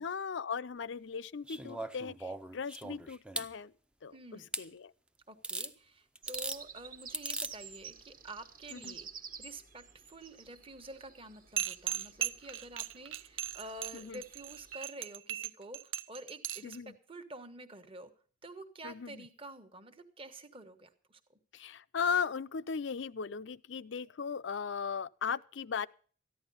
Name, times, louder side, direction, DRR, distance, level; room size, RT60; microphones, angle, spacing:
voice 1, 0.0-3.7 4.0-4.9 8.7-9.0 13.9-14.2 16.6-16.9 18.8-19.2 21.5-25.9, left 6 dB, 65° left, 0.5 m, -37 dB
sound 1, 1.5-3.5 4.5-4.7 5.4-5.7 6.2-6.6 7.1-7.5 8.8-8.9, right 2 dB, 5° right, 0.5 m, -39 dB
voice 2, 4.1-4.5 5.3-9.1 9.4-18.1 18.4-21.4, right 2 dB, 30° right, 1.3 m, -49 dB
sound 2, 6.2-14.8, right 6 dB, 45° right, 1.4 m, -51 dB
sound 3, 11.6-16.8, right 11 dB, 80° right, 0.6 m, -37 dB
14.0 x 10.5 x 5.4 m
head